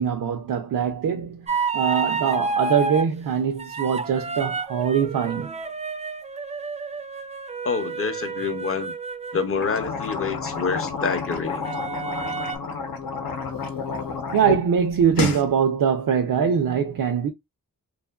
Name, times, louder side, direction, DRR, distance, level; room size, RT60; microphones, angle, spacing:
voice 1, 0.0-1.5 1.7-5.5 14.3-17.3, right 7 dB, 75° right, 0.5 m, -22 dB
sound 1, 1.5-3.1 3.6-9.5 11.6-12.6, right 4 dB, 20° right, 0.4 m, -30 dB
voice 2, 7.6-8.9 9.3-11.7, left 5 dB, 40° left, 0.6 m, -27 dB
sound 2, 9.5-14.6 14.9-15.4, left 5 dB, 85° left, 0.8 m, -30 dB
2.8 x 2.4 x 2.3 m
wide cardioid pair, 80°, 34 cm